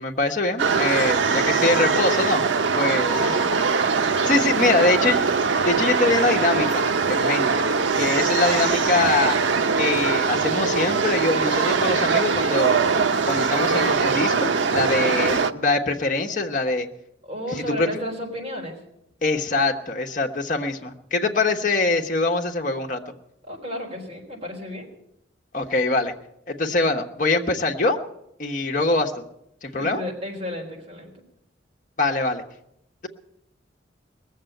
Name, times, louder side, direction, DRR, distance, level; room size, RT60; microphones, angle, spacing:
voice 1, 0.0-2.4 2.7-3.1 4.2-5.2 5.7-6.8 7.1-7.6 7.9-9.4 9.8-12.8 13.3-16.9 17.8-17.9 19.2-23.0 25.5-26.1 26.5-28.0 28.4-29.2 29.6-30.0 32.0-32.4, left 2 dB, 45° left, 2 dB, 1.3 m, -23 dB
sound 1, 0.6-15.5, right 5 dB, 90° right, 0.7 m, -22 dB
voice 2, 2.8-3.5 4.5-4.7 5.0-5.1 17.2-18.8 23.5-24.9 29.6-31.1, left 1 dB, 30° right, -1 dB, 3.9 m, -33 dB
19.5 x 7.6 x 9.1 m, 0.82 s
head